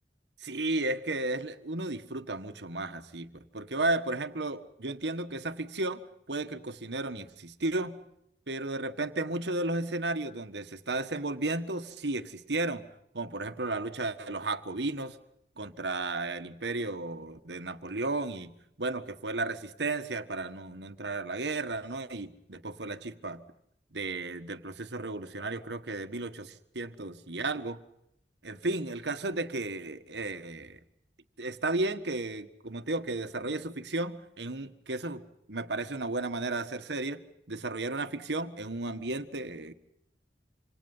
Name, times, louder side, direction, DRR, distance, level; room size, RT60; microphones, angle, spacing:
voice 1, 0.4-6.0 6.3-8.0 8.5-12.8 13.1-15.2 15.6-23.4 23.9-27.8 28.4-30.8 31.4-35.2 35.5-37.2 37.5-39.7, right 2 dB, 70° right, 9 dB, 1.6 m, -34 dB
27.0 x 26.5 x 5.6 m, 0.78 s
head